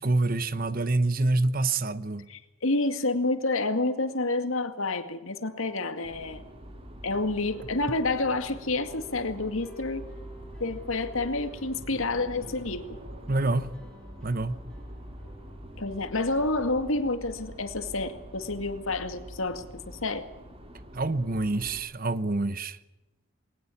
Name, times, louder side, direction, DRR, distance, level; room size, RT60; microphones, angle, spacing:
voice 1, 0.0-2.3 13.3-13.7 14.2-14.6 20.9-22.8, right 2 dB, 40° right, 1.0 m, -26 dB
voice 2, 2.3-6.4 7.0-10.0 10.6-13.0 15.8-20.3, left 2 dB, 70° left, 2.1 m, -29 dB
sound 1, 6.0-21.8, equal, 25° right, 3.2 m, -45 dB
sound 2, 7.4-17.2, right 1 dB, 5° left, 5.2 m, -51 dB
sound 3, 11.6-15.3, right 1 dB, 70° right, 3.2 m, -50 dB
20.5 x 19.5 x 8.5 m
head